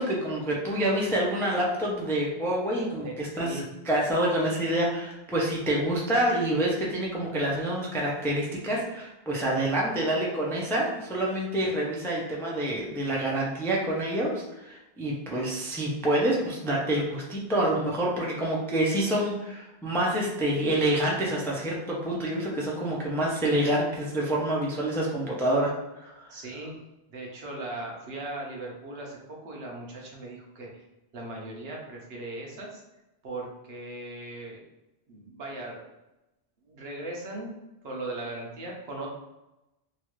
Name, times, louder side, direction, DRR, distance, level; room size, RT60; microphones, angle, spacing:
voice 1, 0.0-3.5 3.8-25.7 26.0-26.4, right 1 dB, 5° left, -3 dB, 0.4 m, -27 dB
voice 2, 3.0-3.6 26.3-26.7 27.1-30.8 31.1-32.8 33.2-34.6 35.1-35.9 36.6-37.6 37.8-39.1, right 2 dB, 75° right, -1 dB, 1.0 m, -38 dB
3.0 x 2.4 x 3.0 m, 0.96 s
omnidirectional pair, 1.1 m